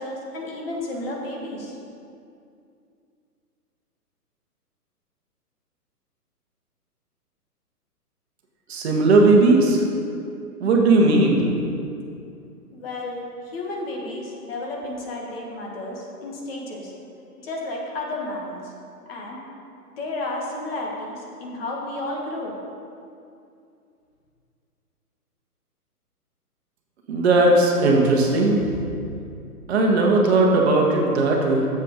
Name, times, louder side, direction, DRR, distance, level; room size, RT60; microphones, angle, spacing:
voice 1, 0.0-1.8 12.7-16.9 17.4-18.7 19.1-19.4 20.0-22.5, left 2 dB, 35° left, -1 dB, 1.5 m, -32 dB
voice 2, 8.7-9.8 10.6-11.4 27.1-28.8 29.7-31.7, right 2 dB, 40° right, 0 dB, 1.3 m, -17 dB
7.4 x 7.1 x 5.1 m, 2.5 s
hypercardioid pair, 150°, 48 cm